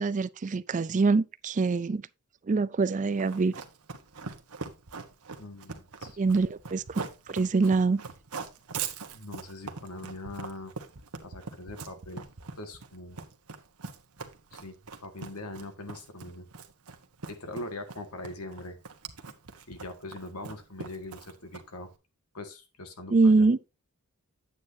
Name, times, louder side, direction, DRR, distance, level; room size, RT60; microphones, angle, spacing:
voice 1, 0.0-2.0 2.5-3.5 6.2-7.0 7.3-8.0 23.1-23.6, right 3 dB, 35° right, 0.4 m, -24 dB
Run, 3.2-21.9, right 5 dB, 90° right, 1.2 m, -41 dB
voice 2, 5.4-6.4 9.1-10.7 11.2-12.2 12.6-13.2 14.5-14.8 15.0-16.5 17.3-18.8 19.7-21.9 22.3-23.5, left 2 dB, 85° left, 1.8 m, -42 dB
9.6 x 8.5 x 2.7 m
head